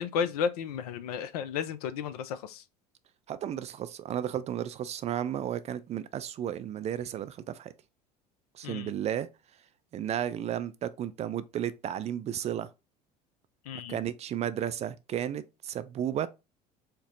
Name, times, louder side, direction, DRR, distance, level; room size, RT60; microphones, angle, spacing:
voice 1, 0.0-2.6 8.6-8.9 13.7-14.0, left 7 dB, 70° left, 0.4 m, -33 dB
voice 2, 3.3-7.7 8.5-9.3 9.9-12.7 13.9-16.3, right 10 dB, 35° right, 0.4 m, -33 dB
4.4 x 2.0 x 3.8 m
figure-of-eight pair, 65°, 20 cm